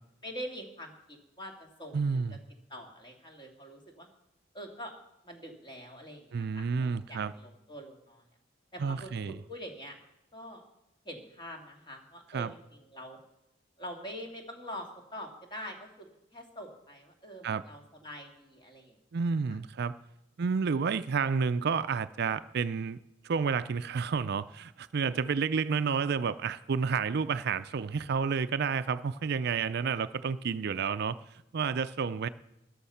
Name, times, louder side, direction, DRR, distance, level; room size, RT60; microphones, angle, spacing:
voice 1, 0.2-2.2 2.7-4.1 4.5-4.9 5.2-8.2 8.7-10.0 10.3-10.6 11.0-13.2 13.8-19.0, equal, 25° left, 2 dB, 2.3 m, -45 dB
voice 2, 1.9-2.4 6.3-7.3 8.8-9.4 12.3-12.5 17.4-17.6 19.1-20.0 20.4-23.0 23.2-32.3, right 5 dB, 55° right, 13 dB, 0.4 m, -30 dB
13.5 x 11.5 x 5.7 m, 0.86 s
head